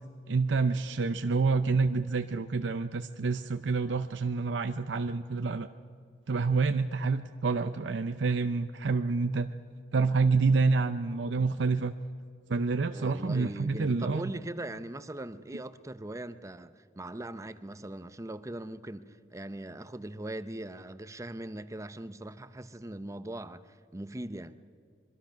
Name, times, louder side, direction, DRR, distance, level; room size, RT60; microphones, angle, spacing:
voice 1, 0.3-5.7 6.3-9.5 9.9-11.9 12.5-14.2, right 4 dB, 80° right, 0.6 m, -28 dB
voice 2, 12.9-24.6, right 1 dB, 15° right, 0.7 m, -40 dB
25.0 x 23.5 x 5.8 m
head